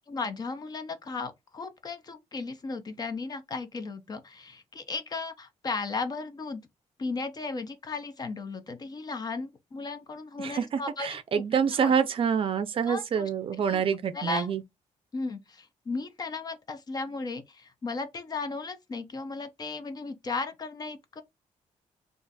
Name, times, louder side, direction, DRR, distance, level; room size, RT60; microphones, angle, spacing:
voice 1, 0.1-6.6 7.0-11.4 11.8-11.9 12.9-13.3 13.7-13.8 14.1-14.5 15.1-21.2, left 3 dB, 30° left, 0.5 m, -35 dB
voice 2, 10.4-14.6, right 7 dB, 45° right, 0.5 m, -27 dB
2.5 x 2.4 x 3.9 m
wide cardioid pair, 155°, 12 cm